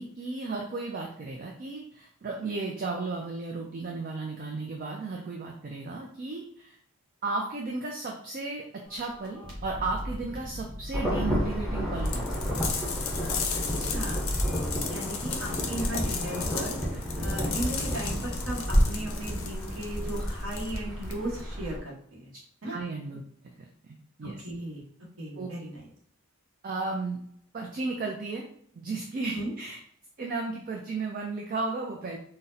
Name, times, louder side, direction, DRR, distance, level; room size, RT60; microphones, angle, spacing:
voice 1, 0.0-6.8 7.2-8.6 8.9-12.6 22.6-23.2 23.6-24.3 25.4-25.5 26.6-27.2 27.5-28.5 28.7-29.8 30.2-32.2, right 3 dB, 40° right, 0 dB, 0.3 m, -34 dB
sound 1, 8.9-18.7, equal, 25° right, 1.1 m, -37 dB
Insect / Thunder / Rain, 10.9-21.8, equal, ahead, 0.6 m, -31 dB
sound 2, 12.1-21.4, left 6 dB, 75° left, 0.6 m, -36 dB
voice 2, 13.6-14.2 14.9-22.3 22.6-22.8 24.2-24.8 25.2-25.8 29.3-29.5, right 1 dB, 60° right, -2 dB, 1.0 m, -36 dB
3.9 x 2.0 x 2.6 m, 0.65 s
head